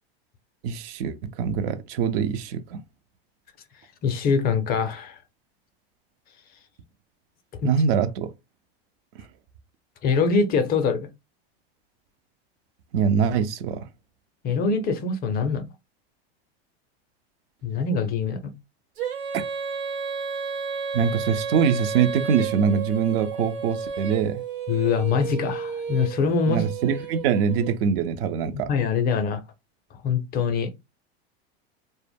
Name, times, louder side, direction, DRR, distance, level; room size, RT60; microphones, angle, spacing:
voice 1, 0.6-2.8 7.6-8.3 12.9-13.8 19.3-19.4 20.9-24.4 26.5-28.7, right 7 dB, 65° right, 0.5 m, -23 dB
voice 2, 4.0-5.2 7.6-7.7 10.0-11.1 14.4-15.7 17.6-18.5 24.7-26.6 28.7-29.4 30.0-30.7, left 5 dB, 30° left, 0.4 m, -23 dB
Female singing, 19.0-27.8, right 6 dB, 80° right, 1.0 m, -32 dB
2.0 x 2.0 x 3.3 m
supercardioid pair, 125°, 32 cm